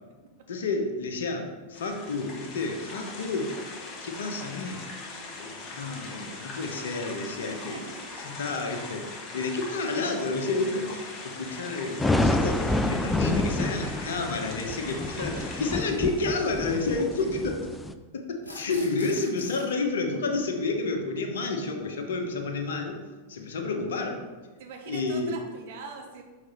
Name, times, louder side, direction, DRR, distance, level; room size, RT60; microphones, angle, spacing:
voice 1, 0.5-3.5 4.0-4.8 5.4-7.8 8.2-9.1 9.3-17.7 18.1-23.0 23.3-24.2 24.9-25.4, left 3 dB, 60° left, 4 dB, 1.0 m, -30 dB
sound 1, 1.7-15.8, left 3 dB, 30° left, 1.3 m, -41 dB
voice 2, 7.6-8.1 15.2-15.3 24.6-26.2, right 5 dB, 55° right, 2 dB, 1.1 m, -42 dB
sound 2, 12.0-17.9, left 2 dB, 5° left, 0.4 m, -28 dB
sound 3, 14.1-14.2 15.6-15.7 18.4-19.7, left 2 dB, 80° left, 1.2 m, -44 dB
6.4 x 4.1 x 4.4 m, 1.3 s
figure-of-eight pair, 90°, 0 cm